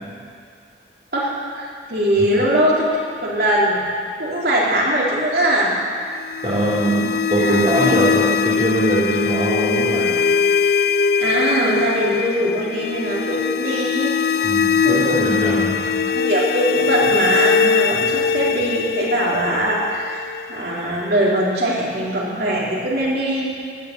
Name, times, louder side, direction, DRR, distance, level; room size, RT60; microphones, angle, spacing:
voice 1, 1.1-3.0 3.2-3.9 4.2-5.8 7.4-7.9 11.2-14.1 14.8-15.5 16.1-20.2 20.5-23.5, right 1 dB, 65° right, -5 dB, 3.5 m, -21 dB
sound 1, 6.1-21.1, left 6 dB, 60° left, 0.4 m, -21 dB
voice 2, 6.4-10.1 14.4-15.9, right 2 dB, 30° right, -7 dB, 2.4 m, -21 dB
18.5 x 8.9 x 7.5 m, 2.2 s
head